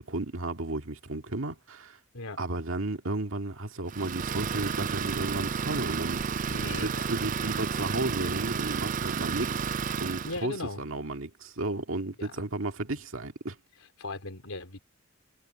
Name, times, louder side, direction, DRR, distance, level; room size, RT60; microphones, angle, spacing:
voice 1, 0.0-2.0 2.4-6.2 6.8-9.7 10.0-13.6, right 2 dB, 70° right, 1.9 m, -33 dB
Idling, 3.9-10.4, right 6 dB, 40° right, 0.4 m, -31 dB
voice 2, 6.5-7.1 7.4-7.6 10.2-10.8 12.2-12.3 14.0-14.8, left 2 dB, 85° left, 3.5 m, -38 dB
head